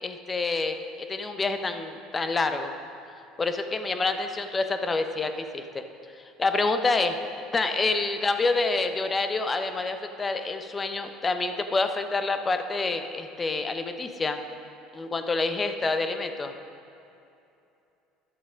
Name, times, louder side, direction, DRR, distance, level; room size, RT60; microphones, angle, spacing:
voice 1, 0.0-2.7 3.4-5.8 6.4-14.4 14.9-16.5, left 3 dB, 25° left, 7 dB, 0.8 m, -27 dB
11.5 x 6.8 x 5.1 m, 2.7 s
supercardioid pair, 85°, 0 cm